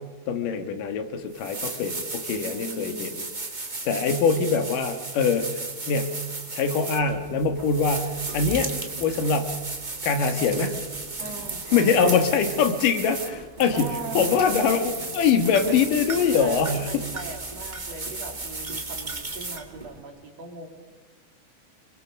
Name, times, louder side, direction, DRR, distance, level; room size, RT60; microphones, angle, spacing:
voice 1, 0.3-3.2 3.6-5.5 5.9-6.2 6.5-8.7 9.0-9.6 10.0-10.8 11.7-16.9, left 5 dB, 80° left, 8 dB, 3.0 m, -23 dB
sound 1, 0.8-0.9 1.3-20.0, right 3 dB, 25° right, 1.1 m, -34 dB
voice 2, 2.4-3.1 11.2-12.2 13.7-14.4 15.7-15.9 16.4-20.7, right 3 dB, 50° right, 2 dB, 3.7 m, -39 dB
25.5 x 22.5 x 6.4 m, 1.3 s
omnidirectional pair, 3.8 m